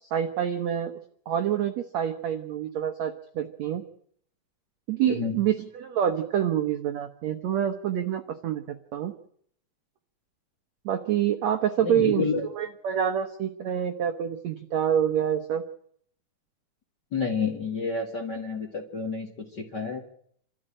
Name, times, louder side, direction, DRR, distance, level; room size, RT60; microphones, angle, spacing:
voice 1, 0.0-0.9 1.3-3.8 4.9-9.1 10.8-12.2 12.6-15.6, right 9 dB, 80° right, 7 dB, 1.5 m, -27 dB
voice 2, 5.0-5.4 11.8-12.5 17.1-20.0, left 5 dB, 35° left, 2 dB, 1.9 m, -29 dB
27.5 x 13.5 x 8.8 m, 0.66 s
omnidirectional pair, 4.8 m